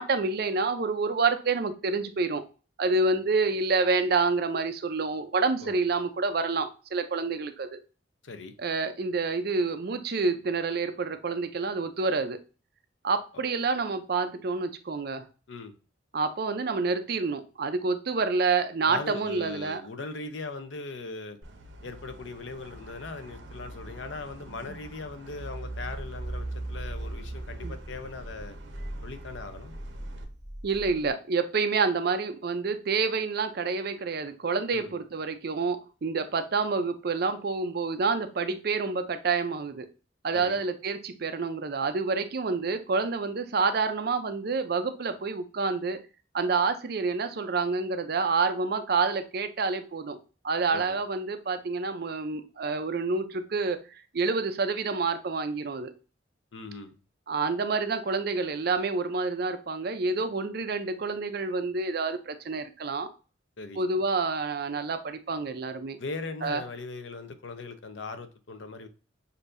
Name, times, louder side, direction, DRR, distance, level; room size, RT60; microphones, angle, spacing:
voice 1, 0.0-2.4 2.8-7.8 8.6-12.4 13.0-15.2 16.1-19.8 27.6-27.7 30.6-39.9 40.2-46.0 46.3-50.2 50.4-53.8 54.1-55.9 57.3-63.1 63.8-66.0 66.4-66.6, right 4 dB, 50° right, 0.5 m, -28 dB
voice 2, 18.8-21.4 21.8-28.6 29.0-29.8 34.7-35.0 40.3-40.6 50.7-51.0 56.5-57.0 63.6-63.8 66.0-68.9, left 3 dB, 70° left, 0.6 m, -39 dB
sound 1, 21.4-30.2, right 2 dB, 75° right, 0.8 m, -41 dB
sound 2, 25.7-31.1, equal, 20° right, 1.0 m, -42 dB
6.5 x 2.7 x 2.5 m
head